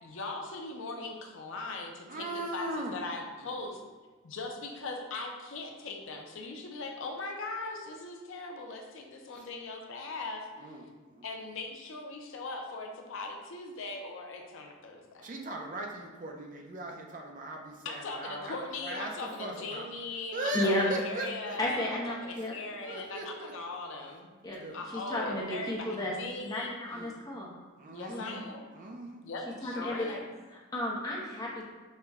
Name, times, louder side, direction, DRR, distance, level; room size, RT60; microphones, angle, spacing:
voice 1, 0.0-3.8 4.2-10.5 11.2-15.3 17.8-20.7 21.0-24.3 24.7-26.7 27.9-28.7 29.2-30.2, left 3 dB, 65° left, 2 dB, 0.5 m, -40 dB
voice 2, 2.1-3.0 3.4-3.5 9.3-9.5 10.6-11.2 15.2-18.6 18.8-19.9 20.3-21.6 22.4-23.5 24.6-24.8 26.9-27.1 27.8-28.5 28.7-29.2 29.5-29.9, right 1 dB, 40° right, 1 dB, 0.5 m, -39 dB
voice 3, 20.5-20.8 21.6-22.5 24.4-24.6 24.8-26.1 26.4-27.5 28.1-28.3 29.6-30.2 30.5-31.6, left 1 dB, 20° left, -4 dB, 0.7 m, -33 dB
5.4 x 2.2 x 3.5 m, 1.4 s
head